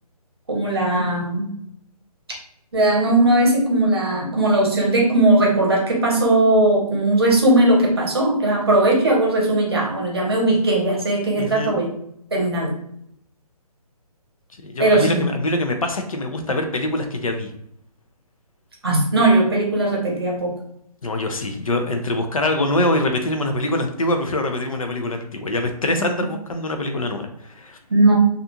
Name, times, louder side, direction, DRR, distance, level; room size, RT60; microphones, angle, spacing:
voice 1, 0.5-1.5 2.7-11.9 12.3-12.7 14.8-15.3 18.8-20.5 27.9-28.1, right 1 dB, 40° right, -3 dB, 0.8 m, -18 dB
voice 2, 11.4-11.7 14.6-17.5 21.0-27.8, left 1 dB, 60° left, 5 dB, 0.5 m, -24 dB
2.4 x 2.3 x 2.7 m, 0.73 s
hypercardioid pair, 180°, 20 cm